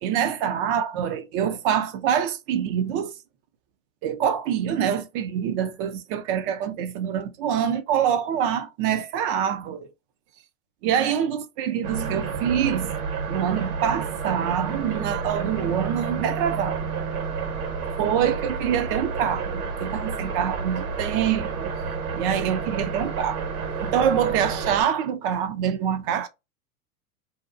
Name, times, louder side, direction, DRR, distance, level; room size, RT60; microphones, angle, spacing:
voice 1, 0.0-3.1 4.0-9.9 10.8-13.0 13.3-16.8 18.0-21.7 22.1-23.4 23.8-26.3, right 9 dB, 40° right, 0.4 m, -25 dB
sound 1, 11.8-24.8, right 5 dB, 70° right, 1.3 m, -30 dB
2.7 x 2.2 x 2.4 m
hypercardioid pair, 110°, 45 cm